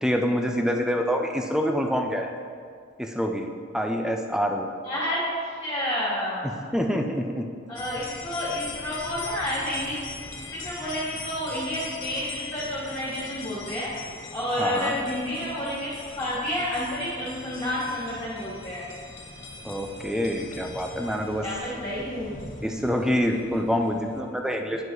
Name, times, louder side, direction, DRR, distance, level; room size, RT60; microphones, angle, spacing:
voice 1, 0.0-2.3 3.0-3.5 3.7-4.7 6.4-7.4 14.6-14.9 19.6-21.4 22.6-24.8, equal, 5° right, 3 dB, 0.5 m, -26 dB
voice 2, 4.8-6.5 7.7-10.0 10.5-13.9 14.3-18.9 21.4-22.4, left 1 dB, 30° left, -11 dB, 2.0 m, -30 dB
sound 1, 7.7-24.2, left 3 dB, 70° left, 1.1 m, -41 dB
9.5 x 5.0 x 3.9 m, 2.1 s
head